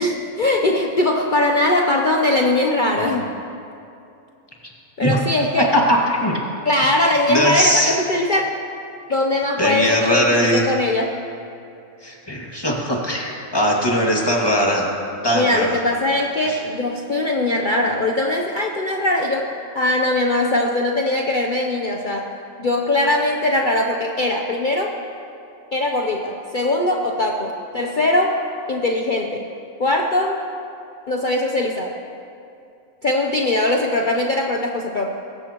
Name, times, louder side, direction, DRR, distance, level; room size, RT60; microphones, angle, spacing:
voice 1, 0.0-3.4 5.0-5.7 6.6-8.5 9.1-11.1 15.3-19.5 19.7-22.3 22.6-24.9 25.7-28.3 28.7-29.5 29.8-30.4 31.1-31.9 33.0-35.1, left 1 dB, 40° left, 1 dB, 0.9 m, -20 dB
voice 2, 5.7-6.4 7.3-8.0 9.6-10.7 12.0-14.9 15.2-15.8 16.5-16.6, equal, 15° left, -2 dB, 2.2 m, -20 dB
23.5 x 14.5 x 3.0 m, 2.7 s
omnidirectional pair, 1.4 m